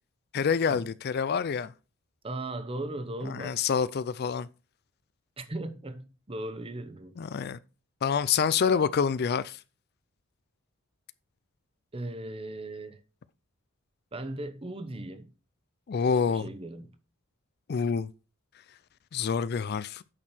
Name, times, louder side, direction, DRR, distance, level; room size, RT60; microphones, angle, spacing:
voice 1, 0.3-1.7 3.3-4.5 7.2-7.6 8.0-9.6 15.9-16.5 17.7-18.1 19.1-20.0, left 6 dB, 50° left, 0.4 m, -27 dB
voice 2, 2.2-3.6 5.4-7.2 11.9-13.0 14.1-15.3 16.0-16.9, right 1 dB, 25° right, 0.9 m, -37 dB
8.8 x 6.4 x 4.3 m
head